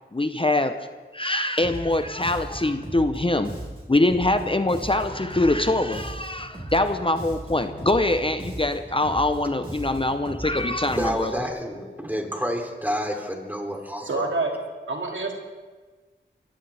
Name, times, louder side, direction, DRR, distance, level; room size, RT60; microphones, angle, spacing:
voice 1, 0.1-0.9 1.1-3.5 3.9-11.3, left 2 dB, 25° left, 9 dB, 0.7 m, -23 dB
Bass guitar, 1.6-11.5, right 1 dB, 25° right, 4.9 m, -37 dB
voice 2, 10.9-14.3, equal, 10° right, 2 dB, 3.0 m, -29 dB
voice 3, 14.1-15.3, right 3 dB, 75° right, 0 dB, 2.4 m, -27 dB
24.5 x 15.5 x 3.5 m, 1.4 s
wide cardioid pair, 50°, 20 cm